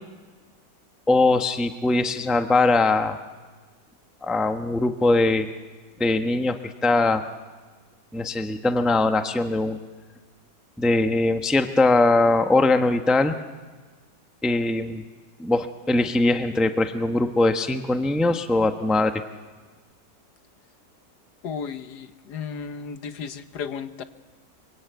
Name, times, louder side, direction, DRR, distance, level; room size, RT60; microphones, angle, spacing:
voice 1, 1.1-3.2 4.2-5.5 6.0-7.2 8.1-9.8 10.8-13.4 14.4-15.0 15.4-19.2, left 2 dB, ahead, 7 dB, 0.7 m, -21 dB
voice 2, 21.4-24.0, left 6 dB, 70° left, 10 dB, 1.6 m, -34 dB
24.5 x 24.0 x 9.2 m, 1.3 s
omnidirectional pair, 1.9 m